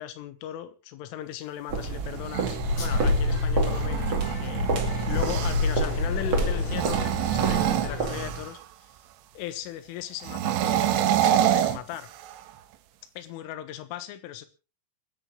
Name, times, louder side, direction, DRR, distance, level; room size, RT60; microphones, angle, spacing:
voice 1, 0.0-4.8 5.1-7.0 7.3-8.6 9.4-12.1 13.2-14.5, left 12 dB, 80° left, 12 dB, 3.8 m, -37 dB
sound 1, 1.7-8.5, right 3 dB, 35° right, 2.3 m, -31 dB
sound 2, 2.1-5.8 6.6-8.6 10.2-12.5, right 11 dB, 75° right, 3.1 m, -27 dB
sound 3, 2.6-8.0, left 3 dB, 40° left, 4.0 m, -28 dB
28.5 x 10.5 x 3.1 m, 0.31 s
omnidirectional pair, 5.7 m